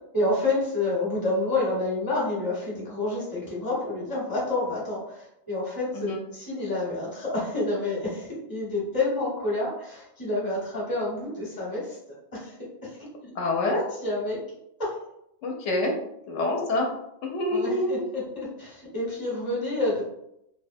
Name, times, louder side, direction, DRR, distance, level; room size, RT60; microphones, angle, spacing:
voice 1, 0.1-12.0 12.3-12.5 12.9-13.3 14.0-14.4 14.8-14.9 17.5-20.0, left 2 dB, 20° left, -6 dB, 0.8 m, -29 dB
voice 2, 13.3-13.9 15.4-15.9 16.3-16.9 17.2-18.0, left 2 dB, 90° left, 0 dB, 0.9 m, -26 dB
2.4 x 2.1 x 2.5 m, 0.79 s
omnidirectional pair, 1.2 m